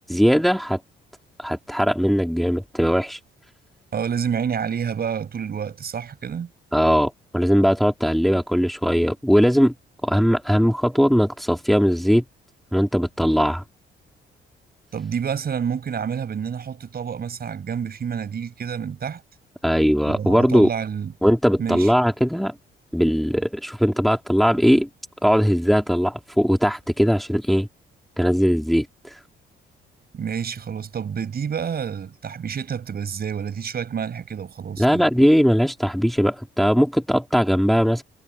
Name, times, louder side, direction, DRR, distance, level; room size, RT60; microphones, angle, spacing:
voice 1, 0.1-0.8 1.4-3.2 6.7-9.7 10.0-12.2 12.7-13.6 19.6-20.7 21.2-22.5 22.9-24.9 25.2-27.7 28.2-28.9 34.8-38.0, equal, ahead, 3.0 m, -19 dB
voice 2, 3.9-6.5 14.9-19.2 20.1-21.1 21.6-21.9 30.1-35.0, right 7 dB, 50° right, 7.1 m, -28 dB
cardioid pair, 90°, 20 cm